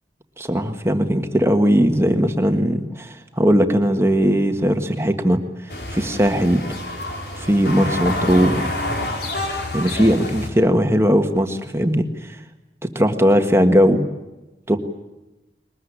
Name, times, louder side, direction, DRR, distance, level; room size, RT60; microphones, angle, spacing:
voice 1, 0.4-5.4 5.9-6.6 7.3-8.7 9.7-12.4 12.8-14.1 14.7-14.8, equal, 15° right, 6 dB, 1.6 m, -18 dB
sound 1, 5.7-10.5, left 1 dB, 65° left, 4.6 m, -27 dB
22.0 x 20.5 x 10.0 m, 1.0 s
head